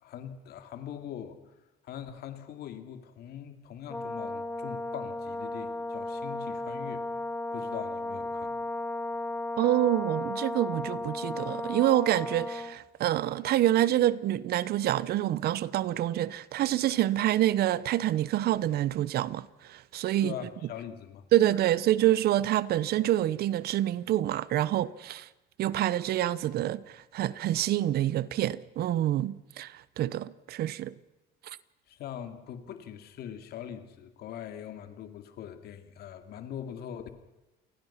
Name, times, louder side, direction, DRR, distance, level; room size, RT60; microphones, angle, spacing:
voice 1, 0.0-1.5 1.8-7.0 7.5-8.7 9.1-9.3 20.2-21.2 31.9-37.1, left 9 dB, 70° left, 2.7 m, -42 dB
Brass instrument, 3.9-12.8, left 2 dB, 10° left, 2.1 m, -35 dB
voice 2, 9.6-20.3 21.3-25.3 25.6-30.9, right 13 dB, 70° right, 1.0 m, -27 dB
28.5 x 20.5 x 5.9 m
cardioid pair, 110°, 17 cm